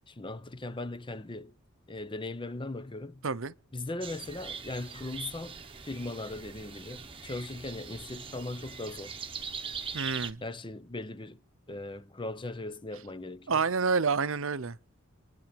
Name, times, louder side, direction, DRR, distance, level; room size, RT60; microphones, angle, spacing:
voice 1, 0.1-1.5 1.9-3.2 3.7-9.2 10.4-11.4 11.7-13.6, left 2 dB, 20° left, 0.7 m, -39 dB
sound 1, 4.0-10.3, right 6 dB, 25° right, 1.1 m, -41 dB
voice 2, 9.9-10.4 13.5-14.8, right 5 dB, 60° right, 0.7 m, -28 dB
28.0 x 9.9 x 5.2 m
head